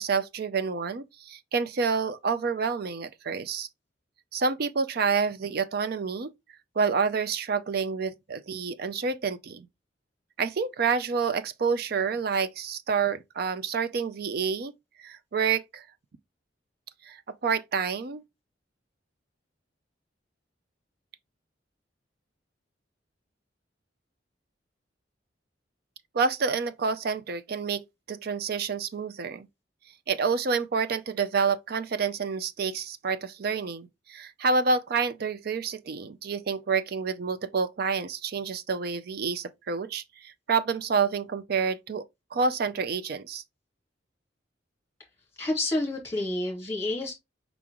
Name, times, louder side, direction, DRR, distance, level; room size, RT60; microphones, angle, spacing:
voice 1, 0.0-3.7 4.3-6.3 6.8-9.7 10.4-14.7 15.0-15.8 17.0-18.2 26.1-29.5 30.1-42.0 42.3-43.4, right 5 dB, 55° right, 0.4 m, -28 dB
voice 2, 45.4-47.1, left 2 dB, 15° left, 2.0 m, -29 dB
5.0 x 3.6 x 2.9 m
head